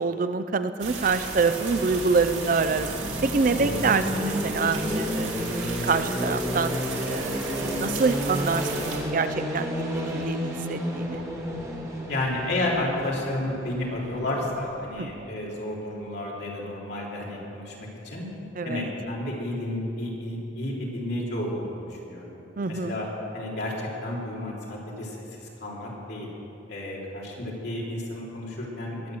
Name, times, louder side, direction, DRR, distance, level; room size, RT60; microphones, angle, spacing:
voice 1, 0.0-2.9 3.2-5.6 5.8-6.8 7.1-11.2 15.0-15.1 18.6-18.9 22.6-22.9, right 4 dB, 45° right, 11 dB, 0.5 m, -26 dB
sound 1, 0.8-9.0, right 4 dB, 85° right, 2.9 m, -35 dB
sound 2, 1.3-15.2, equal, 15° right, 1.9 m, -32 dB
voice 2, 12.1-17.7 18.0-18.3 18.6-22.4 22.7-23.1 23.3-26.3 26.7-29.2, left 1 dB, 60° left, -4 dB, 3.4 m, -31 dB
21.0 x 7.1 x 7.7 m, 2.9 s
head